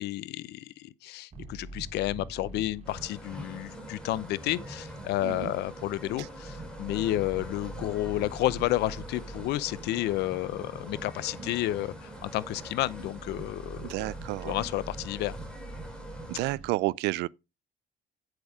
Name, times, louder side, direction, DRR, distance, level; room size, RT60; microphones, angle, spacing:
voice 1, 0.0-13.9 14.4-15.3, left 15 dB, 80° left, 0.7 m, -31 dB
sound 1, 1.3-16.7, right 2 dB, 40° right, 4.0 m, -45 dB
sound 2, 2.8-16.5, equal, 5° left, 3.8 m, -45 dB
voice 2, 13.8-14.5 16.3-17.3, right 20 dB, 85° right, 0.4 m, -30 dB
8.8 x 7.9 x 3.6 m
cardioid pair, 110°, 17 cm